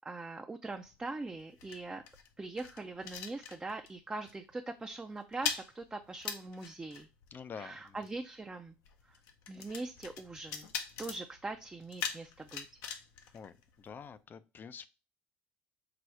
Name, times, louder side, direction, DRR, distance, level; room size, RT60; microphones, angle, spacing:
voice 1, 0.0-2.0 2.4-7.1 7.5-8.7 9.1-9.2 9.5-10.7 11.0-12.8, right 3 dB, 15° right, 4 dB, 0.5 m, -42 dB
sound 1, 0.6-4.0 4.3-4.5 4.8-14.2, left 7 dB, 70° left, 0.7 m, -43 dB
voice 2, 7.3-7.9 13.3-13.5 13.8-14.9, left 6 dB, 35° left, 13 dB, 0.5 m, -47 dB
4.9 x 2.0 x 4.5 m, 0.30 s
hypercardioid pair, 70°, 5 cm